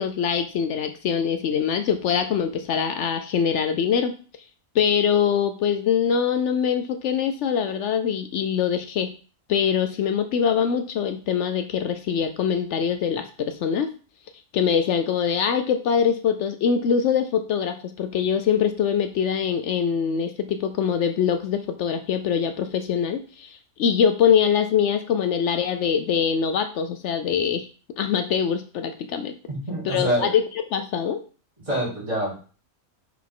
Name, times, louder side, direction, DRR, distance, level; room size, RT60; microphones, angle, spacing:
voice 1, 0.0-4.1 4.7-9.1 9.5-13.9 14.5-27.7 28.0-29.3 29.9-30.3 30.7-31.2, left 7 dB, 70° left, 8 dB, 0.8 m, -23 dB
voice 2, 29.5-30.4 31.6-32.3, equal, 30° right, -6 dB, 3.5 m, -26 dB
6.0 x 4.6 x 3.6 m, 0.39 s
omnidirectional pair, 1.3 m